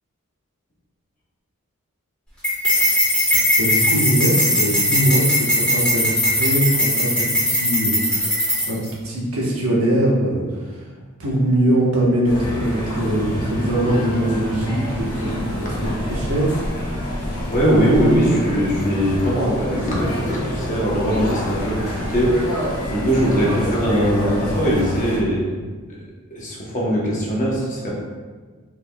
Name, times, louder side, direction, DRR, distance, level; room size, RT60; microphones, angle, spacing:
sound 1, 2.4-8.9, equal, 5° left, 1.5 m, -19 dB
voice 1, 3.6-10.8 11.2-16.6, right 1 dB, 75° right, -4 dB, 1.1 m, -22 dB
sound 2, 12.2-25.2, equal, 80° left, 1.2 m, -27 dB
voice 2, 17.5-25.6 26.3-27.9, equal, 35° left, -5 dB, 0.9 m, -20 dB
4.8 x 3.5 x 2.2 m, 1.4 s
head